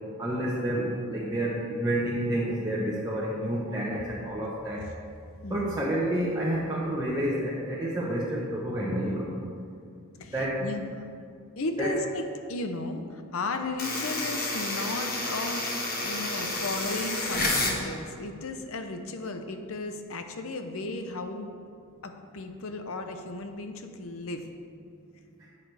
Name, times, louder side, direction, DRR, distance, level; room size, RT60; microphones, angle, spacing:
voice 1, 0.2-4.9 5.5-9.3 10.3-10.6 11.8-11.9, right 1 dB, 15° right, -7 dB, 1.0 m, -29 dB
voice 2, 5.4-5.8 10.2-11.2 11.6-21.5 22.0-24.4, left 2 dB, 70° left, 7 dB, 0.7 m, -35 dB
sound 1, 13.8-17.8, left 2 dB, 45° left, 1.3 m, -30 dB
10.5 x 8.4 x 3.4 m, 2.3 s
head